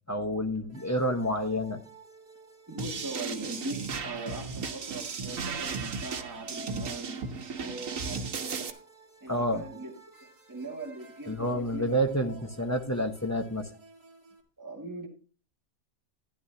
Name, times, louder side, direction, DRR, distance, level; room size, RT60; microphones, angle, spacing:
voice 1, 0.1-1.8 9.3-9.6 11.3-13.7, equal, 15° left, 0.9 m, -29 dB
sound 1, 0.7-14.4, right 3 dB, 30° right, 1.8 m, -53 dB
voice 2, 2.7-8.8 9.2-9.9 10.2-12.5 14.6-15.1, right 2 dB, 15° right, 2.0 m, -41 dB
sound 2, 2.8-8.7, right 5 dB, 75° right, 1.5 m, -35 dB
13.5 x 11.0 x 2.8 m
omnidirectional pair, 1.4 m